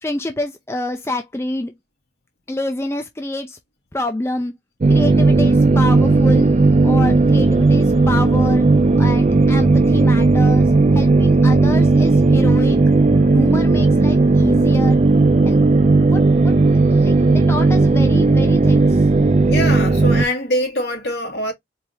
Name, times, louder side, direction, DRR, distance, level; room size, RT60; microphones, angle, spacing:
voice 1, 0.0-1.7 2.5-3.6 3.9-4.5 4.9-6.5 6.8-8.6 9.0-12.8 13.3-15.0 15.5-15.6 16.1-16.6 16.9-19.0, left 1 dB, 15° left, 0.6 m, -27 dB
sound 1, 4.8-20.2, right 3 dB, 40° right, 0.4 m, -14 dB
voice 2, 19.5-21.5, left 1 dB, 75° left, 2.5 m, -24 dB
4.6 x 3.4 x 2.8 m
head